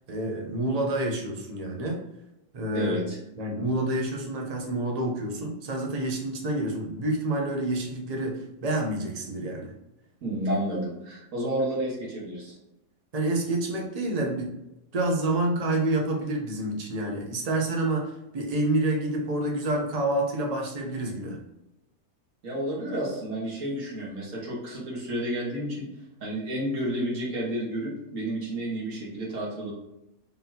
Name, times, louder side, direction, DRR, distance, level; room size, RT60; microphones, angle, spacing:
voice 1, 0.1-2.0 2.5-3.0 3.4-9.7 13.1-14.6 14.9-21.4, right 1 dB, 40° right, 1 dB, 0.6 m, -28 dB
voice 2, 2.7-3.2 10.2-12.5 22.4-25.9 26.2-29.7, right 1 dB, 55° right, -5 dB, 1.8 m, -31 dB
3.9 x 3.6 x 2.8 m, 0.91 s
omnidirectional pair, 1.7 m